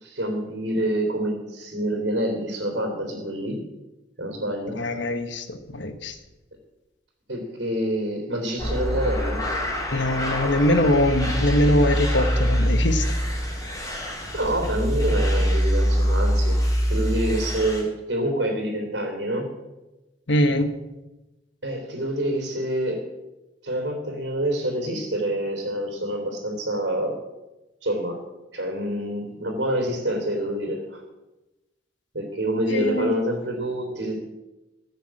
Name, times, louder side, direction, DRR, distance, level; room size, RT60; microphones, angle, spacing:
voice 1, 0.0-3.6 4.2-4.8 7.3-9.4 14.3-16.6 16.9-19.5 21.6-23.0 23.6-27.1 27.8-28.2 28.5-31.0 32.1-34.2, right 1 dB, 70° right, 1 dB, 3.3 m, -27 dB
voice 2, 4.8-6.1 9.9-13.1 20.3-20.7 32.7-33.2, left 1 dB, 75° left, 9 dB, 1.2 m, -22 dB
sound 1, 8.6-17.8, equal, 20° left, 4.1 m, -24 dB
15.5 x 7.0 x 7.6 m, 1.0 s
head